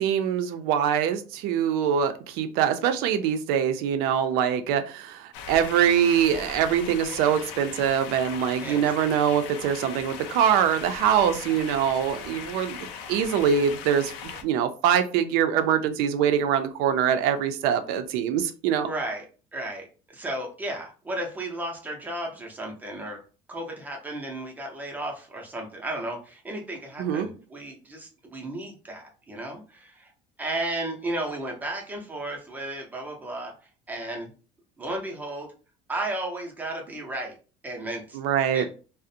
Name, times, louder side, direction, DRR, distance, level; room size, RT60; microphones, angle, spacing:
voice 1, 0.0-14.1 14.4-18.9 27.0-27.3 38.1-38.7, right 8 dB, 70° right, 8 dB, 0.4 m, -24 dB
sound 1, 5.3-14.4, left 7 dB, 80° left, 0.5 m, -39 dB
voice 2, 18.8-19.3 19.5-19.9 20.1-23.2 23.5-30.1 30.4-33.5 33.9-34.3 34.8-35.5 35.9-37.4 37.6-38.2 38.5-38.7, right 1 dB, 10° right, 1 dB, 0.5 m, -34 dB
2.4 x 2.0 x 2.6 m, 0.35 s
cardioid pair, 175°, 17 cm